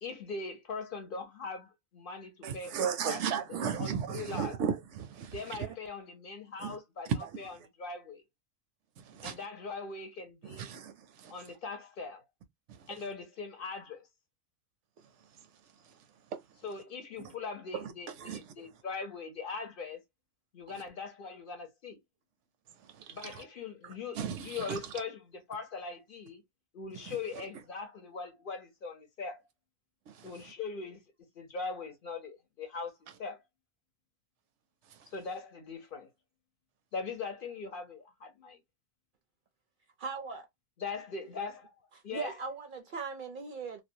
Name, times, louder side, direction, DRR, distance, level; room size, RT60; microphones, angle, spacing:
voice 1, 0.0-3.2 3.5-4.5 5.3-7.1 7.4-8.2 9.2-10.7 11.3-12.2 12.9-14.1 16.6-20.0 20.5-22.0 23.1-26.4 26.7-29.4 30.2-31.0 31.4-32.9 33.2-33.4 35.1-36.1 36.9-38.6 40.8-41.7 42.0-42.3, left 4 dB, 55° left, 0.8 m, -41 dB
voice 2, 2.4-5.8 6.6-6.8 7.1-7.4 9.0-9.4 10.4-11.3 12.7-13.0 15.8-16.0 16.3-16.4 17.2-17.3 17.7-18.7 22.8-23.4 23.8-24.9 27.1-27.5 30.1-30.3 34.9-35.1, right 7 dB, 85° right, 0.9 m, -36 dB
voice 3, 40.0-40.5 42.1-43.8, right 4 dB, 60° right, 0.6 m, -39 dB
2.5 x 2.1 x 2.6 m
omnidirectional pair, 1.2 m